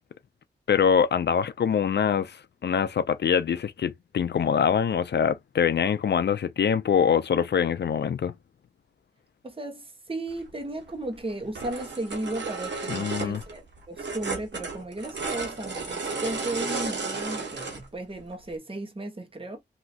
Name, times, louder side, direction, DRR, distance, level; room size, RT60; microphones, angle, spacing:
voice 1, 0.7-8.3 12.9-13.4, left 7 dB, 70° left, 0.4 m, -24 dB
voice 2, 9.4-13.6 13.9-19.6, right 2 dB, 30° right, 1.3 m, -35 dB
sound 1, 10.5-10.6 11.3-11.4 11.6-17.9 18.3-18.4, right 4 dB, 85° right, 1.4 m, -33 dB
3.0 x 2.8 x 2.7 m
cardioid pair, 50°, 18 cm